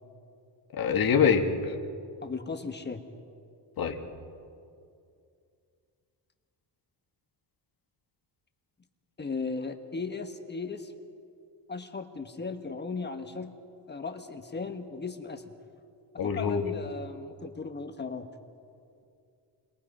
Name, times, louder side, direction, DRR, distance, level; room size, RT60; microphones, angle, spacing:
voice 1, 0.8-1.7 3.8-3.9 16.2-16.6, left 6 dB, 55° left, 3 dB, 2.0 m, -24 dB
voice 2, 2.2-3.0 9.2-10.9 11.7-13.5 13.9-15.5 16.2-18.3, left 4 dB, 25° left, 6 dB, 1.3 m, -36 dB
30.0 x 22.5 x 5.5 m, 2.4 s
cardioid pair, 145°, 42 cm